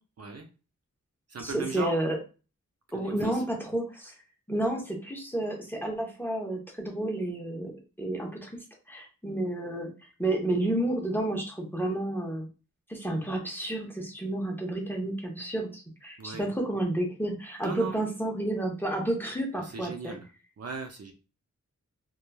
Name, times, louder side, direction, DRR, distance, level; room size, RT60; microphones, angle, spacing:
voice 1, 0.2-0.5 1.3-1.9 2.9-3.4 16.2-16.5 17.6-18.0 19.6-20.3 20.6-21.1, right 4 dB, 50° right, 3 dB, 0.5 m, -37 dB
voice 2, 1.4-2.2 2.9-4.1 4.5-7.7 8.0-8.5 8.9-9.9 10.2-12.5 12.9-20.2, right 1 dB, 5° left, 1 dB, 0.7 m, -31 dB
3.0 x 2.2 x 2.2 m, 0.33 s
wide cardioid pair, 90°, 32 cm